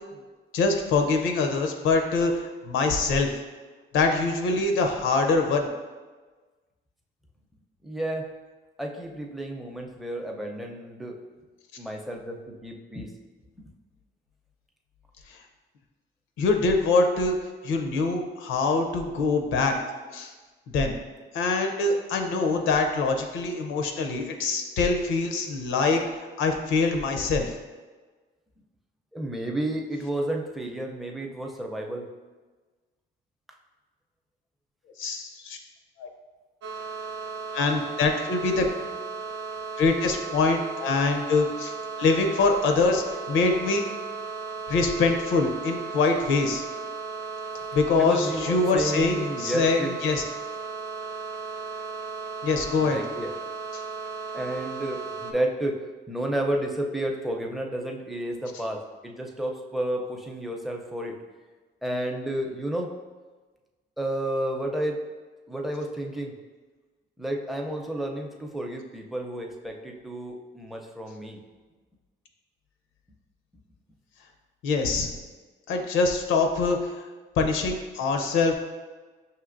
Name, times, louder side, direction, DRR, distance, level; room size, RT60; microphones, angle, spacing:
voice 1, 0.5-3.3 3.9-5.7 16.4-17.4 17.6-19.7 20.1-20.3 20.7-20.9 21.3-26.0 26.4-27.5 35.0-35.6 36.0-36.1 37.5-38.7 39.8-43.9 44.7-46.6 47.7-50.2 52.4-53.0 53.7-53.8 74.6-75.1 75.7-77.0 77.4-78.5, left 3 dB, 90° left, 4 dB, 0.6 m, -24 dB
voice 2, 7.8-8.3 8.8-11.2 11.8-13.1 13.6-13.7 29.1-32.1 47.6-47.7 48.0-50.0 52.8-53.4 54.3-61.2 61.8-62.9 64.0-65.0 65.5-66.3 67.2-71.4, right 1 dB, ahead, 0 dB, 0.5 m, -31 dB
sound 1, 36.6-55.3, right 4 dB, 70° right, 0.5 m, -35 dB
5.7 x 2.8 x 2.5 m, 1.3 s
cardioid pair, 90°, 20 cm